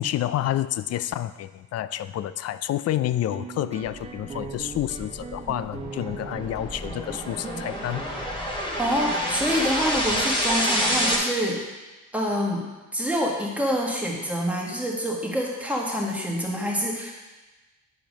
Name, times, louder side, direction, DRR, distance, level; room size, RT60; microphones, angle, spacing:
voice 1, 0.0-8.1, left 12 dB, 55° left, 15 dB, 0.4 m, -29 dB
sound 1, 3.3-8.4, right 4 dB, 20° right, 0.6 m, -39 dB
sound 2, 4.3-11.2, equal, 15° left, 2.6 m, -28 dB
voice 2, 8.8-11.6 12.1-12.6 12.9-17.1, equal, 5° right, -2 dB, 1.8 m, -26 dB
9.0 x 4.6 x 5.2 m, 1.2 s
cardioid pair, 90°, 30 cm